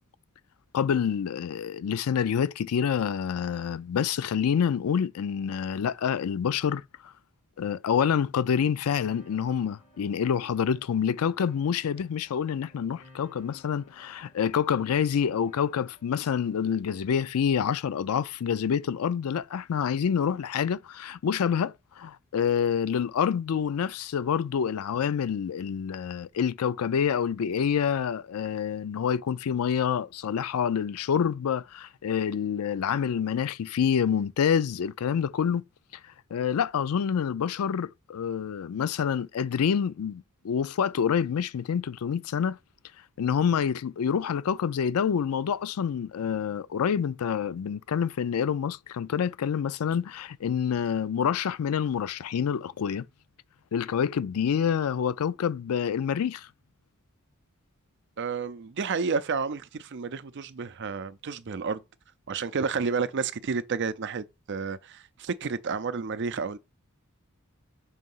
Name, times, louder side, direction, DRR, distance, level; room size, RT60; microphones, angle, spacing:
voice 1, 0.7-6.8 7.6-35.6 36.3-42.6 43.2-53.1 53.7-56.5, left 7 dB, 75° left, 0.4 m, -27 dB
sound 1, 8.9-17.0, left 1 dB, 55° left, 1.7 m, -59 dB
voice 2, 58.2-61.8 62.3-66.6, right 5 dB, 55° right, 0.5 m, -31 dB
6.3 x 2.8 x 5.4 m
head